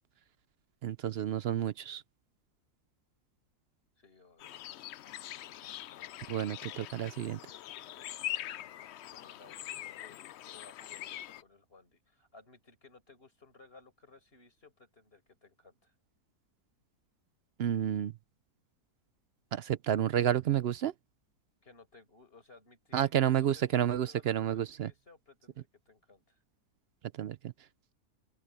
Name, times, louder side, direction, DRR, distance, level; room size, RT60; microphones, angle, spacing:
voice 1, 0.8-2.0 6.3-7.4 17.6-18.1 19.5-20.9 22.9-24.9 27.2-27.4, right 10 dB, 65° right, 0.6 m, -30 dB
voice 2, 4.0-4.6 9.1-10.2 10.5-15.9 21.6-26.4, left 3 dB, 40° left, 5.4 m, -59 dB
sound 1, 4.4-11.4, left 13 dB, 70° left, 0.6 m, -43 dB
open air
omnidirectional pair, 1.6 m